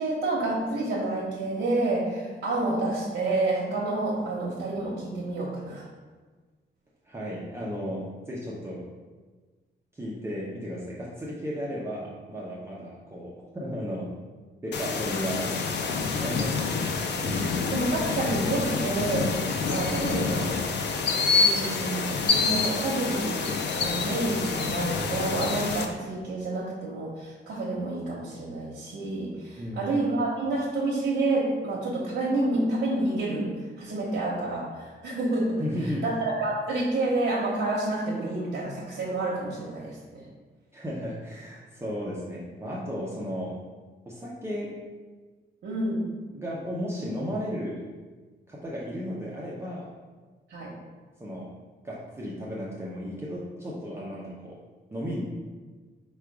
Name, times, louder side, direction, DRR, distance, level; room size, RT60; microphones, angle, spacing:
voice 1, 0.0-5.8 17.2-20.5 21.4-23.4 23.8-40.2 45.6-46.0 50.5-50.8, right 2 dB, 65° right, -6 dB, 0.8 m, -29 dB
voice 2, 7.1-8.8 9.9-14.1 14.6-16.6 29.6-29.9 35.6-36.0 40.7-43.6 44.1-44.7 46.3-47.8 48.5-49.9 51.2-51.5 51.8-54.6 54.9-55.2, equal, 15° right, -6 dB, 0.5 m, -34 dB
sound 1, 14.7-25.8, left 4 dB, 65° left, 0.5 m, -27 dB
4.8 x 2.3 x 4.6 m, 1.4 s
wide cardioid pair, 175°, 20 cm